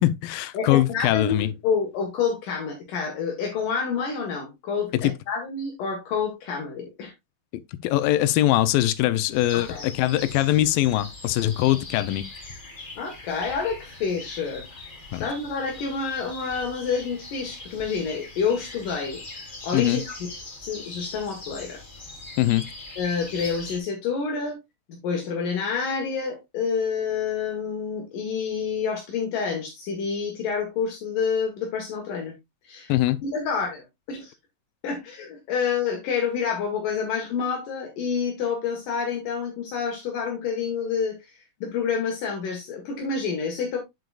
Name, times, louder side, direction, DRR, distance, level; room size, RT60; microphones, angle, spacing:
voice 1, 0.0-1.5 4.9-5.1 7.8-12.3 15.1-15.3 19.7-20.0 22.4-22.7 32.9-33.2, left 14 dB, 90° left, 2.4 m, -22 dB
voice 2, 0.5-7.1 9.5-9.9 13.0-14.8 15.2-21.8 23.0-24.6 24.9-32.3 32.6-32.9 33.2-34.3 34.8-43.8, left 6 dB, 70° left, 2.9 m, -28 dB
sound 1, 9.3-23.8, left 3 dB, 40° left, 0.6 m, -41 dB
8.5 x 7.7 x 2.4 m
omnidirectional pair, 4.0 m